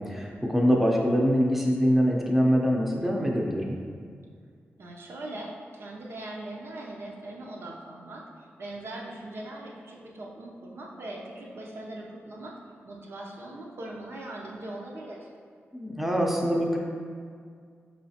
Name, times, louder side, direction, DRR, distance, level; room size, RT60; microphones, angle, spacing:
voice 1, 0.0-3.8 15.7-16.8, equal, 5° right, -1 dB, 0.6 m, -24 dB
voice 2, 4.8-12.5 12.9-15.3, right 1 dB, 65° right, -3 dB, 0.6 m, -40 dB
4.6 x 3.1 x 2.8 m, 2.1 s
cardioid pair, 70°, 4 cm